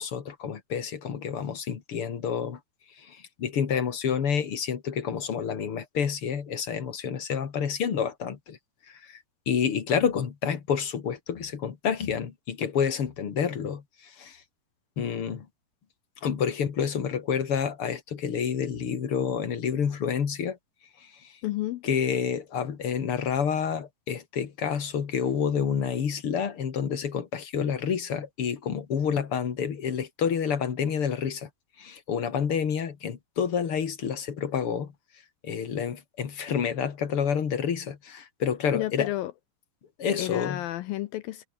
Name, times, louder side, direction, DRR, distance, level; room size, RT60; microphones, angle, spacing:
voice 1, 0.0-2.6 3.0-8.6 8.9-9.2 9.5-14.4 15.0-15.5 16.2-20.6 21.8-31.5 31.8-34.9 35.4-39.1 40.0-40.6, left 7 dB, 45° left, 2.1 m, -29 dB
voice 2, 21.4-21.8 38.7-39.3 40.2-41.5, left 15 dB, 80° left, 2.2 m, -31 dB
omnidirectional pair, 4.9 m